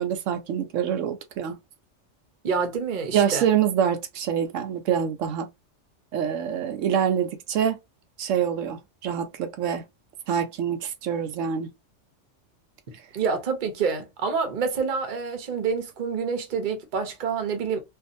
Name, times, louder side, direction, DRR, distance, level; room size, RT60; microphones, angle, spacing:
voice 1, 0.0-1.6 3.1-5.5 6.1-7.8 8.2-9.8 10.3-11.7, right 8 dB, 85° right, 0.9 m, -25 dB
voice 2, 2.4-3.5 13.1-17.8, right 5 dB, 45° right, 0.8 m, -27 dB
2.7 x 2.4 x 2.5 m
omnidirectional pair, 1.3 m